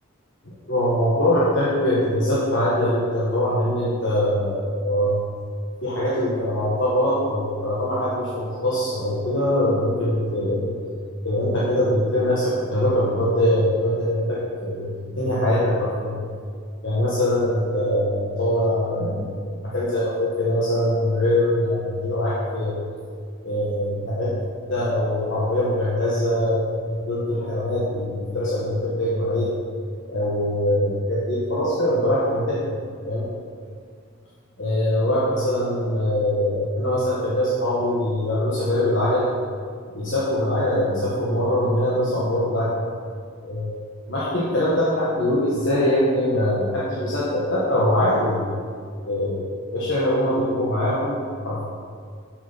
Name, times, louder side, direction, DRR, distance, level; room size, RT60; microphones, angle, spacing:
voice 1, 0.7-5.1 5.8-10.7 11.2-16.2 16.8-19.5 19.7-22.8 23.4-24.4 24.7-29.5 30.0-32.7 33.0-33.3 34.6-39.3 39.9-42.8 43.4-43.7 44.1-48.5 49.0-51.6, left 1 dB, 60° left, -7 dB, 1.4 m, -22 dB
6.7 x 6.7 x 5.5 m, 2.1 s
head